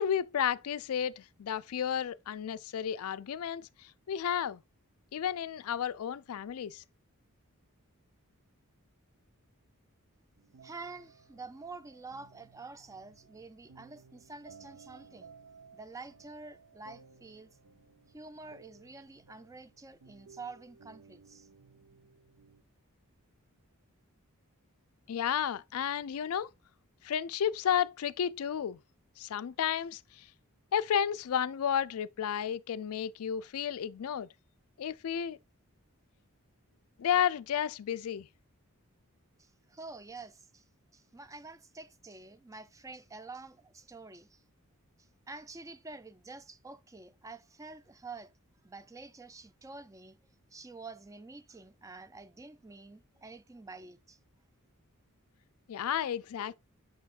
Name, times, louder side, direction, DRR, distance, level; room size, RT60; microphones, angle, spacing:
voice 1, 0.0-4.6 5.1-6.8 25.1-26.5 27.0-28.8 29.2-30.3 30.7-34.3 34.8-35.4 37.0-38.3 55.7-56.5, left 8 dB, 75° left, 0.4 m, -32 dB
sound 1, 10.4-22.6, right 5 dB, 80° right, 0.6 m, -58 dB
voice 2, 10.6-15.3 15.7-17.5 18.1-21.5 39.4-40.7 40.9-44.4 45.0-48.3 48.6-50.2 50.5-54.2, right 3 dB, 15° right, 0.4 m, -48 dB
6.3 x 6.2 x 2.4 m
head